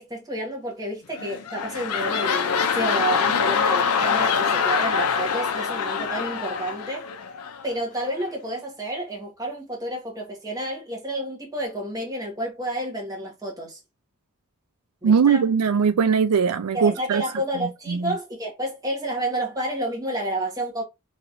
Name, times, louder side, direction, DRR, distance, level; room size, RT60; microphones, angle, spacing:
voice 1, 0.0-7.1 7.6-13.8 15.0-15.5 16.7-20.8, right 1 dB, 15° right, 1.3 m, -30 dB
sound 1, 1.1-7.7 8.2-8.3, left 6 dB, 85° left, 0.6 m, -24 dB
voice 2, 15.0-17.2 17.6-18.1, right 6 dB, 80° right, 0.4 m, -20 dB
3.2 x 2.9 x 2.6 m
head